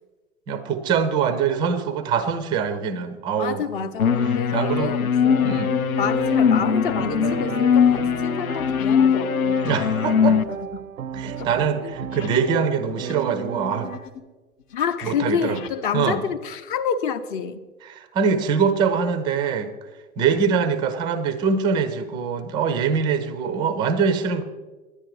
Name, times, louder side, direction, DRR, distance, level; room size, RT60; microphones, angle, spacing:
voice 1, 0.5-3.9 4.2-5.0 5.4-5.7 9.6-10.4 11.1-13.9 15.0-15.6 15.9-16.2 17.8-19.7 20.2-24.4, right 6 dB, 10° right, 11 dB, 0.4 m, -23 dB
voice 2, 3.4-5.7 6.0-9.5 11.8-12.0 14.7-17.6, left 7 dB, 40° left, 10 dB, 0.8 m, -28 dB
sound 1, 3.6-3.9 4.4-4.6 5.3-5.7 6.0-12.6 12.9-14.3 14.6-15.8, left 2 dB, 65° left, 1.0 m, -43 dB
sound 2, 4.0-10.4, left 7 dB, 85° left, 0.5 m, -21 dB
sound 3, 5.2-14.0, right 9 dB, 80° right, 0.5 m, -34 dB
10.5 x 9.8 x 4.7 m, 1.3 s
figure-of-eight pair, 105°, 41 cm